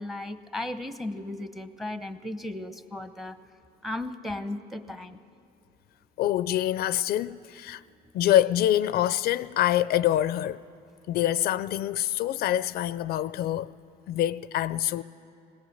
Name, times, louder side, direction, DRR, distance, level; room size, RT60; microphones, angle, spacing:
voice 1, 0.0-3.4 3.8-5.2, left 1 dB, ahead, 0.7 m, -35 dB
voice 2, 6.2-7.8 8.1-10.6 11.1-13.7 14.1-15.0, left 12 dB, 65° left, 0.4 m, -25 dB
19.5 x 18.0 x 7.8 m
cardioid pair, 110°, 17 cm